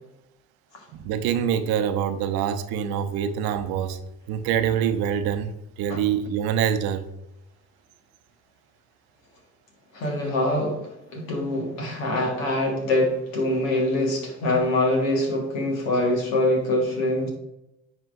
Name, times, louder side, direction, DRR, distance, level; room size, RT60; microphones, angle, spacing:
voice 1, 0.9-4.0 4.3-7.1, right 9 dB, 70° right, 10 dB, 0.7 m, -25 dB
voice 2, 9.9-17.3, left 1 dB, 85° left, 0 dB, 1.7 m, -24 dB
9.6 x 4.4 x 2.6 m, 0.88 s
hypercardioid pair, 55°, 39 cm